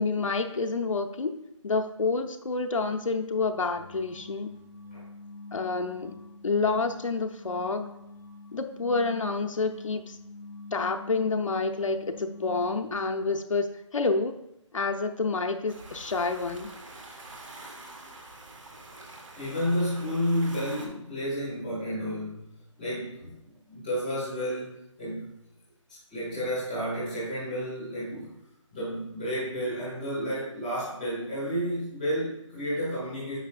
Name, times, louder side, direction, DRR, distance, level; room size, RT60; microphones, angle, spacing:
voice 1, 0.0-1.4 1.6-4.5 5.5-6.1 6.4-7.9 8.5-10.2 10.7-14.3 14.7-16.7, left 3 dB, 75° left, 5 dB, 0.8 m, -28 dB
sound 1, 3.7-13.4, left 3 dB, 40° left, 0.7 m, -46 dB
sound 2, 15.7-20.9, right 2 dB, 75° right, 1.7 m, -45 dB
voice 2, 19.4-22.4 22.8-23.3 23.7-25.4 26.1-28.3 28.7-33.4, equal, ahead, -17 dB, 0.5 m, -31 dB
9.0 x 5.9 x 2.5 m, 0.82 s
figure-of-eight pair, 175°, 17 cm